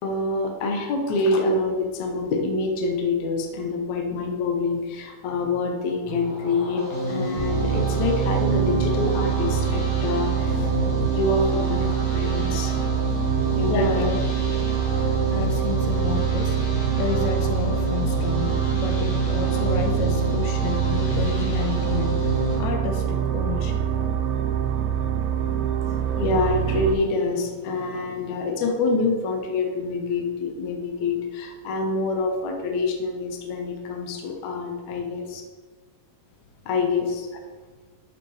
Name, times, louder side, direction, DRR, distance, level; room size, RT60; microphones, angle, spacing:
voice 1, 0.0-10.7 11.0-13.1 13.6-13.9 26.1-35.4 36.7-37.3, left 3 dB, 65° left, 2 dB, 2.0 m, -26 dB
sound 1, 6.1-22.6, equal, 40° left, 1.3 m, -29 dB
sound 2, 7.4-27.0, right 9 dB, 90° right, 2.6 m, -25 dB
voice 2, 13.7-14.2 14.5-14.6 15.3-23.8 37.3-37.4, left 7 dB, 85° left, 4 dB, 2.7 m, -31 dB
12.5 x 5.9 x 3.2 m, 1.3 s
omnidirectional pair, 4.4 m